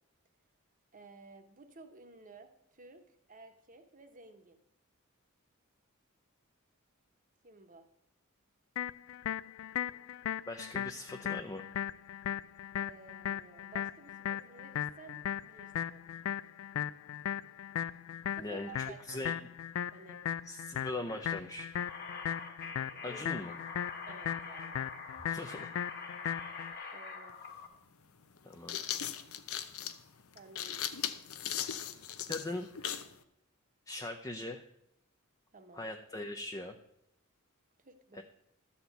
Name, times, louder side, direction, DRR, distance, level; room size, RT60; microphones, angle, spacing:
voice 1, 0.9-3.0 3.3-4.6 7.4-7.9 12.8-16.0 18.4-19.4 19.9-20.2 23.0-23.4 24.1-24.9 26.9-27.4 30.3-30.9 35.5-35.9 37.8-38.2, right 3 dB, 40° right, 7 dB, 1.1 m, -54 dB
sound 1, 8.8-26.7, left 10 dB, 70° left, 0.3 m, -37 dB
voice 2, 10.5-11.6 18.4-19.4 20.5-21.7 23.0-23.5 25.3-25.7 28.4-28.8 32.3-32.9 33.9-34.6 35.7-36.7 38.1-38.2, left 2 dB, 15° left, 4 dB, 0.6 m, -40 dB
sound 2, 21.7-27.7, left 4 dB, 50° left, 1.6 m, -45 dB
sound 3, 27.3-27.4 28.4-33.1, left 9 dB, 90° left, 0.7 m, -38 dB
12.5 x 4.3 x 8.0 m, 0.80 s
head